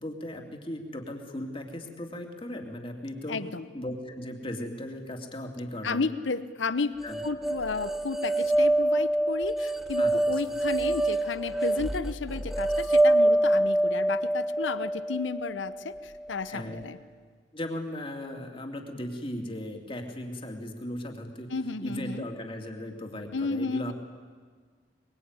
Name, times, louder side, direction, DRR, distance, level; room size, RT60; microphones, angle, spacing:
voice 1, 0.0-3.4 3.7-6.1 7.0-7.2 10.0-10.1 10.5-10.6 16.5-16.8 17.5-21.5 21.8-23.9, left 1 dB, 30° left, 3 dB, 2.9 m, -37 dB
voice 2, 3.3-3.7 5.8-17.0 21.5-22.2 23.3-23.9, left 4 dB, 85° left, 14 dB, 0.9 m, -32 dB
sound 1, 7.1-16.3, right 1 dB, ahead, 0.8 m, -26 dB
23.0 x 23.0 x 9.7 m, 1.5 s
head